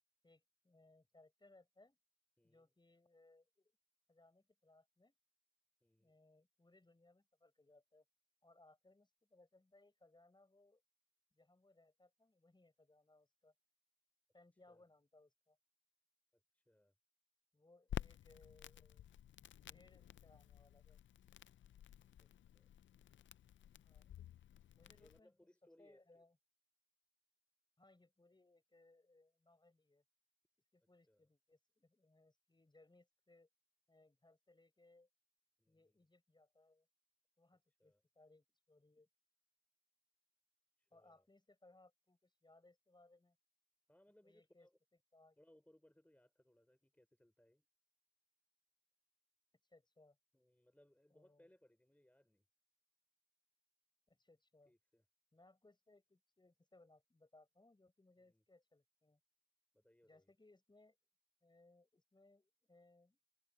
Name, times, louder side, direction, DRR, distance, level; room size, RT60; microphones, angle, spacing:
voice 1, 0.2-2.0 2.4-3.7 4.1-5.1 6.0-8.0 8.4-10.8 11.3-13.5 14.3-15.6 17.5-19.0 19.4-21.0 23.8-24.2 24.7-25.3 25.8-26.4 27.8-30.0 30.7-33.5 33.9-35.1 35.7-36.9 37.4-39.1 40.9-43.4 44.2-44.7 45.1-45.4 49.7-50.2 51.1-51.5 54.1-54.7 55.3-59.2 60.0-61.0 61.4-63.2, left 2 dB, 25° left, 4.6 m, -69 dB
voice 2, 2.4-2.7 5.8-6.1 14.7-14.9 16.3-16.9 22.2-22.7 24.9-26.2 31.1-31.3 35.6-36.1 37.8-38.0 40.8-41.3 43.9-44.8 45.4-47.7 50.3-52.5 54.7-55.0 58.2-58.4 59.7-60.3, left 1 dB, 10° left, 3.4 m, -70 dB
Crackle, 17.9-25.2, left 11 dB, 80° left, 0.4 m, -52 dB
open air
cardioid pair, 70°, 19 cm